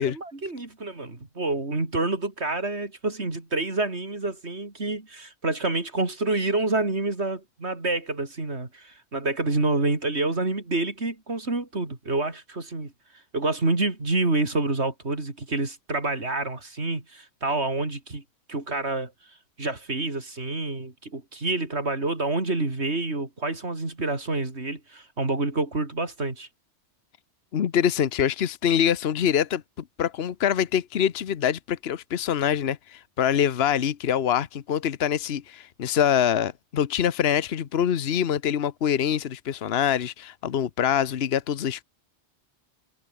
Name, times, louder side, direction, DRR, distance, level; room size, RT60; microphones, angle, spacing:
voice 1, 0.0-12.9 13.3-18.2 18.5-19.1 19.6-26.5, right 2 dB, 75° right, 4.0 m, -28 dB
voice 2, 27.5-29.6 30.0-41.8, left 9 dB, 65° left, 1.1 m, -24 dB
omnidirectional pair, 1.1 m